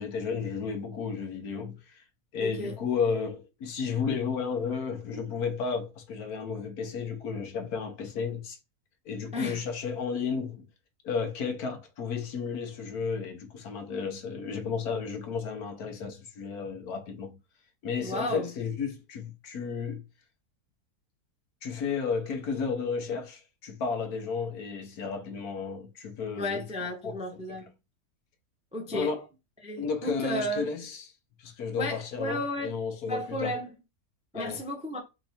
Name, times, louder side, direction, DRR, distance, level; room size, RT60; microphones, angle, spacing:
voice 1, 0.0-2.0 2.3-8.6 9.0-10.7 11.0-17.4 17.8-20.0 21.6-26.6 27.0-27.2 28.9-29.2 29.8-31.1 31.4-33.5 34.3-34.6, left 5 dB, 70° left, 1.4 m, -33 dB
voice 2, 2.4-2.8 9.3-9.6 18.0-18.5 26.4-27.7 28.7-29.1 29.6-30.7 31.8-32.7 33.1-33.8 34.3-35.0, left 1 dB, 5° right, 0.5 m, -33 dB
4.4 x 2.8 x 4.2 m
omnidirectional pair, 1.7 m